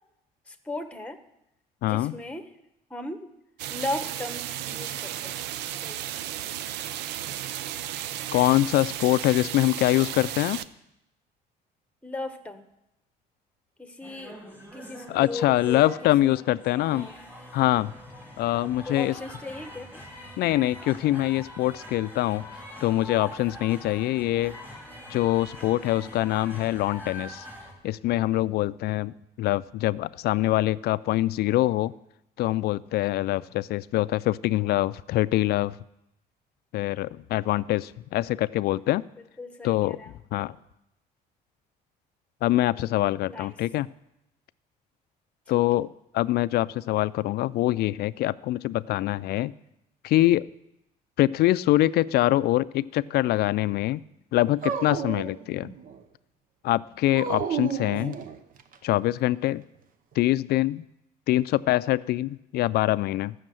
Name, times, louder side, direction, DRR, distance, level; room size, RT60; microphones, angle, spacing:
voice 1, 0.5-1.2 1.8-2.5 2.9-3.3 3.7-5.4 5.8-6.0 12.0-12.6 13.8-16.4 16.9-17.1 18.5-20.0 39.4-40.1 43.2-43.5, left 2 dB, 5° left, 7 dB, 1.1 m, -37 dB
voice 2, 1.8-2.1 8.3-10.6 15.1-17.1 17.5-17.9 18.4-19.1 20.4-22.5 22.8-24.5 25.1-27.4 27.8-31.9 32.4-35.8 36.7-39.0 39.6-40.6 42.4-43.9 45.5-45.9 46.1-49.5 50.0-50.5 51.2-54.0 54.3-55.7 56.6-58.2 58.8-59.6 60.2-60.8 61.3-63.3, left 16 dB, 70° left, 17 dB, 0.4 m, -24 dB
sound 1, 3.6-10.7, right 12 dB, 90° right, 0.5 m, -34 dB
sound 2, 14.0-27.7, left 1 dB, 10° right, 3.3 m, -43 dB
Dog, 54.6-56.0 57.1-58.8, right 7 dB, 55° right, 0.8 m, -32 dB
14.5 x 6.4 x 7.6 m, 0.85 s
cardioid pair, 110°, 17 cm